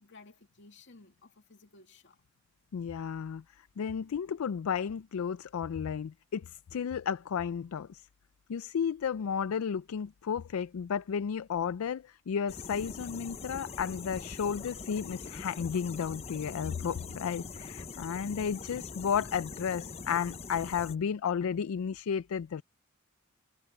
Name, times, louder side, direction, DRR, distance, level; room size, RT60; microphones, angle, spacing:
voice 1, 0.0-2.2, left 3 dB, 60° left, 2.4 m, -56 dB
voice 2, 2.7-3.4 3.8-8.1 8.5-22.6, left 7 dB, 85° left, 0.4 m, -33 dB
sound 1, 12.5-21.0, left 4 dB, 30° left, 0.6 m, -43 dB
head